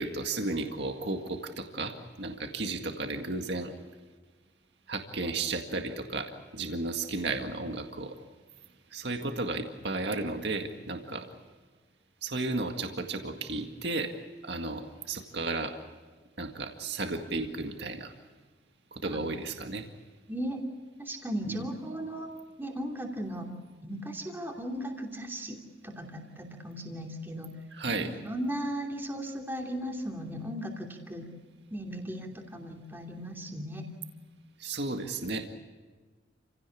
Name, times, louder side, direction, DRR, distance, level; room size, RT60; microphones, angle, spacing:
voice 1, 0.0-3.7 4.9-8.2 8.9-11.3 12.2-14.1 14.4-15.7 16.4-18.1 18.9-19.9 21.5-21.6 27.7-28.1 34.6-35.5, right 3 dB, 60° right, 4 dB, 2.0 m, -34 dB
voice 2, 20.3-20.6 21.0-22.3 22.6-23.5 23.8-27.5 27.9-31.3 31.7-33.8, equal, 10° right, 1 dB, 2.9 m, -37 dB
29.0 x 17.0 x 8.5 m, 1.4 s
head